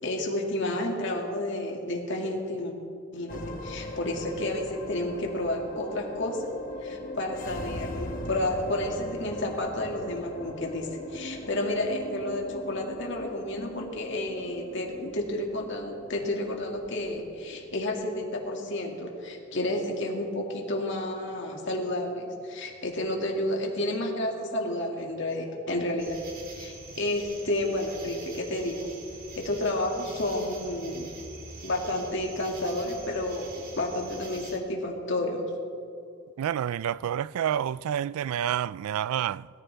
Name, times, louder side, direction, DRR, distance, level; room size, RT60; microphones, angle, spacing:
voice 1, 0.0-2.7 3.1-6.6 6.8-26.2 26.5-28.9 29.3-31.1 31.6-35.4, left 1 dB, 60° left, 2.3 m, -31 dB
sound 1, 3.3-21.8, left 1 dB, 40° left, 1.2 m, -41 dB
sound 2, 26.0-34.6, right 3 dB, 45° right, 2.1 m, -45 dB
voice 2, 36.4-39.5, right 9 dB, 90° right, 0.3 m, -29 dB
20.5 x 14.0 x 3.5 m
head